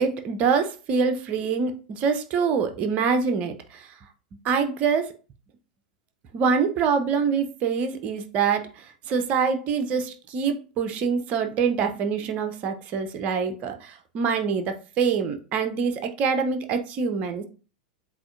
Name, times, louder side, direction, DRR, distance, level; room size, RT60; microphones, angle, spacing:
voice 1, 0.0-3.9 4.4-5.1 6.3-17.4, right 6 dB, 35° right, 0.7 m, -25 dB
7.7 x 2.6 x 2.5 m
figure-of-eight pair, 90°, 4 cm